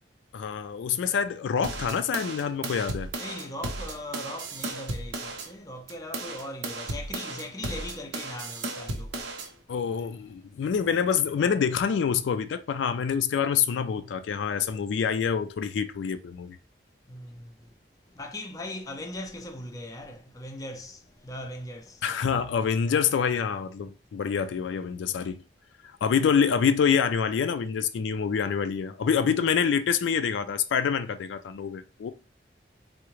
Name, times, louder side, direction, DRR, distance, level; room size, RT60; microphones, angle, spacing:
voice 1, 0.3-3.1 9.7-16.6 22.0-25.4 26.0-32.1, left 7 dB, 90° left, 0.3 m, -26 dB
sound 1, 1.6-5.5 5.9-9.5, right 2 dB, 85° right, 0.6 m, -35 dB
voice 2, 3.2-9.5 17.1-17.7 18.1-22.0, left 1 dB, 20° left, 0.4 m, -39 dB
3.6 x 2.1 x 2.9 m
head